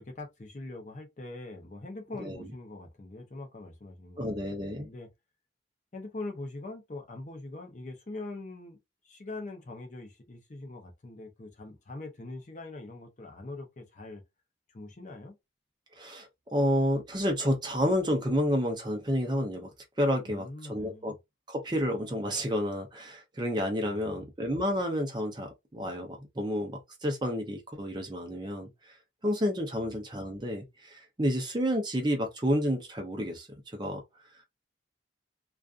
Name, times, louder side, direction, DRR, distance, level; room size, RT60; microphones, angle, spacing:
voice 1, 0.0-5.1 5.9-8.8 9.0-14.2 14.7-15.4 20.2-21.1 23.8-24.2, left 2 dB, 40° left, 0.6 m, -43 dB
voice 2, 4.2-4.9 16.0-19.7 20.0-21.1 21.5-28.7 29.2-33.5 33.7-34.0, equal, 25° right, 0.5 m, -30 dB
2.4 x 2.4 x 2.4 m
head